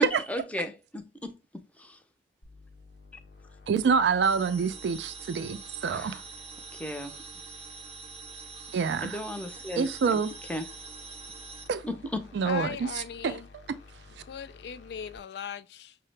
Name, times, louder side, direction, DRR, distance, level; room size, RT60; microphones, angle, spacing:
voice 1, 0.0-1.4 1.8-2.0 5.8-6.2 6.8-7.1 9.0-9.9 10.5-10.6 11.8-12.3, equal, 10° left, 0.5 m, -34 dB
sound 1, 2.4-15.2, left 3 dB, 85° left, 0.8 m, -53 dB
voice 2, 3.7-6.2 8.7-9.2 9.8-10.3 11.7-11.8 12.3-13.3, right 5 dB, 70° right, 0.3 m, -27 dB
sound 2, 4.2-11.7, right 5 dB, 35° right, 0.6 m, -45 dB
voice 3, 12.5-13.5 14.3-16.0, left 8 dB, 65° left, 0.4 m, -38 dB
5.6 x 2.0 x 3.2 m
head